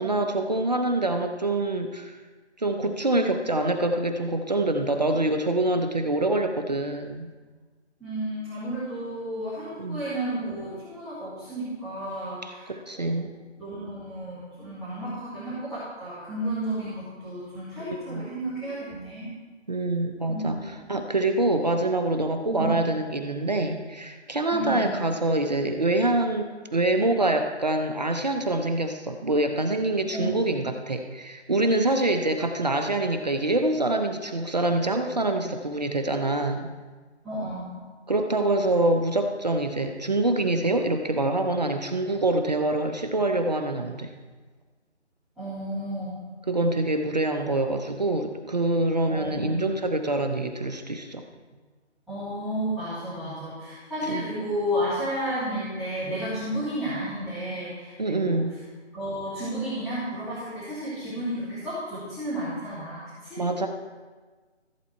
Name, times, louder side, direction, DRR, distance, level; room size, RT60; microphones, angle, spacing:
voice 1, 0.0-2.2 2.6-7.3 9.8-10.0 12.7-13.3 17.8-18.3 19.7-36.7 38.1-44.1 46.5-51.2 54.1-54.2 58.0-58.5 63.4-63.7, right 2 dB, 35° right, 6 dB, 0.8 m, -25 dB
voice 2, 8.0-13.3 13.6-19.3 20.3-21.0 22.5-22.8 24.5-25.0 30.1-30.5 37.2-37.7 45.4-46.2 49.1-49.7 52.1-58.4 58.9-63.4, right 1 dB, ahead, -16 dB, 1.9 m, -32 dB
14.5 x 8.3 x 4.5 m, 1.4 s
figure-of-eight pair, 160°, 35 cm